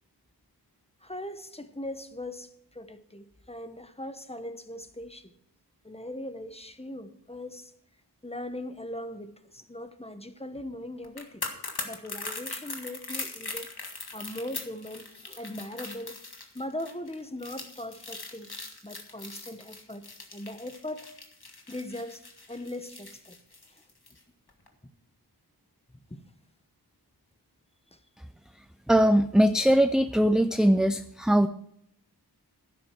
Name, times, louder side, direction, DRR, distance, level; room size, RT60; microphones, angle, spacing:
voice 1, 1.0-5.3 5.8-7.7 8.2-11.4 11.8-13.7 14.1-16.2 16.5-20.1 20.3-21.1 21.7-23.4 23.7-23.8 26.1-26.3 27.9-28.0, left 1 dB, 15° left, 1.1 m, -40 dB
sound 1, 11.0-24.2 24.5-24.7, left 3 dB, 70° left, 1.8 m, -40 dB
voice 2, 28.9-31.5, equal, ahead, 0.4 m, -21 dB
12.0 x 11.0 x 4.6 m
wide cardioid pair, 45°, 40 cm